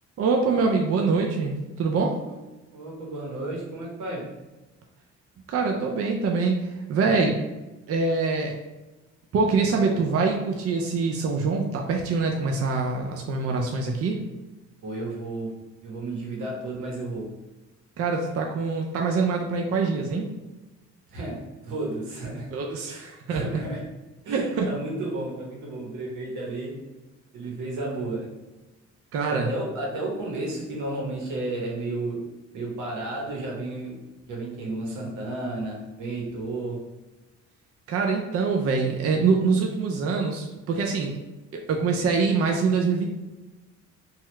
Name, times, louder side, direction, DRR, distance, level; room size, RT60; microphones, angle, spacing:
voice 1, 0.2-2.1 5.5-7.4 7.9-8.6 9.3-14.2 18.0-20.3 22.5-23.4 24.3-24.7 29.1-29.5 37.9-41.2 41.5-43.1, right 4 dB, 50° right, 1 dB, 0.5 m, -24 dB
voice 2, 2.7-4.3 14.8-17.3 21.1-22.5 22.9-23.8 24.2-26.8 27.3-28.3 29.3-32.2 32.5-34.0 34.3-36.8, right 2 dB, 85° right, -2 dB, 1.0 m, -32 dB
2.8 x 2.4 x 3.1 m, 1.1 s
cardioid pair, 90°, 30 cm